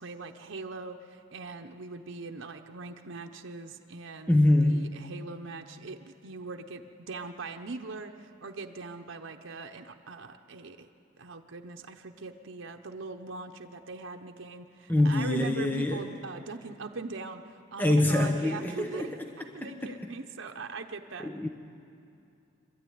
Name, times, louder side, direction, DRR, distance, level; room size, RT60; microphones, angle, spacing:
voice 1, 0.0-4.3 4.6-10.9 11.2-19.1 19.4-21.3, right 3 dB, 80° right, 4 dB, 0.9 m, -41 dB
voice 2, 4.3-4.9 14.9-16.1 17.8-19.2 19.6-20.0 21.2-21.5, left 1 dB, 10° left, 3 dB, 0.9 m, -25 dB
25.5 x 13.0 x 9.4 m, 2.7 s
head